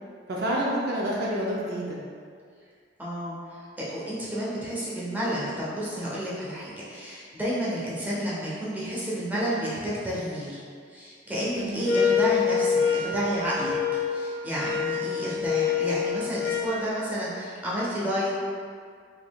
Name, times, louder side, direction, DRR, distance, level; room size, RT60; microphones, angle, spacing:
voice 1, 0.3-2.0 11.6-12.0, equal, 60° right, -4 dB, 0.5 m, -28 dB
voice 2, 3.0-3.4 3.8-10.6 10.9-13.7 14.1-18.3, equal, 10° right, -8 dB, 0.7 m, -30 dB
sound 1, 11.9-16.8, left 6 dB, 55° left, 0.4 m, -26 dB
3.7 x 3.0 x 2.2 m, 2.1 s
head